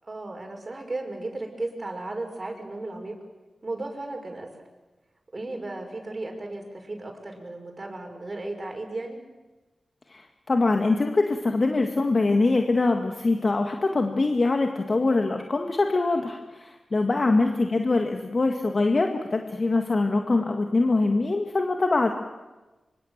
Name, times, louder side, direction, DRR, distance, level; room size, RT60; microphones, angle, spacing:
voice 1, 0.0-3.2 3.6-4.5 5.3-9.2 17.1-17.3, right 2 dB, 40° right, 3 dB, 5.9 m, -35 dB
voice 2, 10.1-22.1, left 3 dB, 50° left, 4 dB, 1.9 m, -23 dB
25.0 x 24.5 x 7.5 m, 1.2 s
cardioid pair, 55°, 0 cm